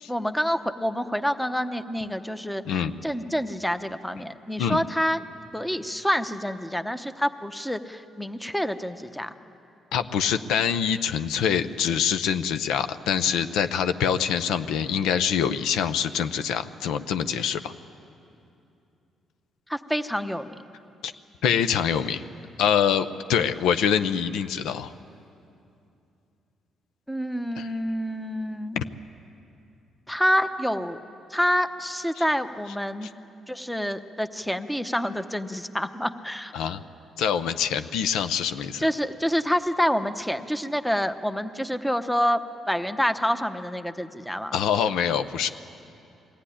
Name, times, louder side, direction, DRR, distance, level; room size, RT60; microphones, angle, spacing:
voice 1, 0.1-5.2 5.5-9.3 19.7-20.5 27.1-28.8 30.1-31.0 31.3-33.1 33.5-36.5 38.8-42.4 42.7-44.6, equal, 5° left, 9 dB, 0.8 m, -27 dB
voice 2, 9.9-17.7 21.0-21.1 21.4-22.2 22.6-24.9 27.6-27.7 28.8-28.9 36.5-36.8 37.2-38.8 44.5-45.5, left 8 dB, 90° left, 10 dB, 0.6 m, -25 dB
21.5 x 15.5 x 10.0 m, 2.7 s
cardioid pair, 90°, 0 cm